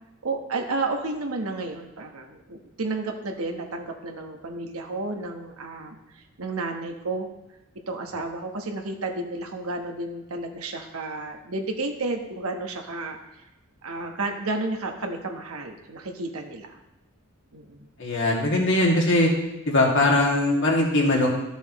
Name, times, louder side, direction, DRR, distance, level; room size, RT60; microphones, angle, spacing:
voice 1, 0.2-7.3 7.9-13.2 13.8-16.8 17.5-17.9, right 2 dB, 85° right, 3 dB, 1.2 m, -32 dB
voice 2, 18.0-19.3 19.7-21.3, left 2 dB, 60° left, -2 dB, 2.2 m, -20 dB
13.5 x 7.0 x 3.1 m, 0.96 s
head